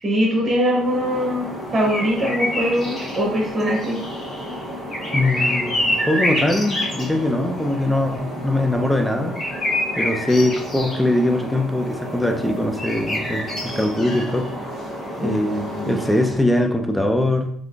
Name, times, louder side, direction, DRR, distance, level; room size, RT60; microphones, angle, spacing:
voice 1, 0.0-4.0 15.2-16.0, equal, 30° right, -1 dB, 0.8 m, -22 dB
sound 1, 0.6-16.5, left 1 dB, 40° left, 1.1 m, -28 dB
voice 2, 5.1-9.4 10.0-14.5 15.2-17.5, left 1 dB, 5° left, 5 dB, 0.5 m, -21 dB
3.3 x 2.5 x 2.4 m, 0.63 s
supercardioid pair, 80°, 0 cm